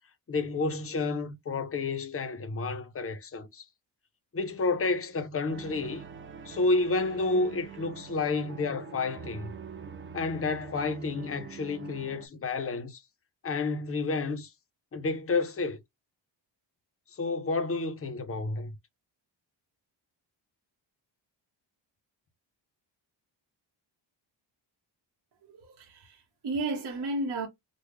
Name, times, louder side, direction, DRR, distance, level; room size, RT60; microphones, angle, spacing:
voice 1, 0.3-3.6 4.3-6.0 6.5-9.5 10.1-13.0 13.4-14.5 14.9-15.8 17.1-18.7, left 3 dB, 30° left, 0.6 m, -30 dB
sound 1, 5.5-12.3, right 6 dB, 30° right, 0.4 m, -44 dB
voice 2, 25.5-27.5, right 2 dB, 60° right, 1.0 m, -33 dB
3.3 x 2.0 x 3.2 m
wide cardioid pair, 155°, 45 cm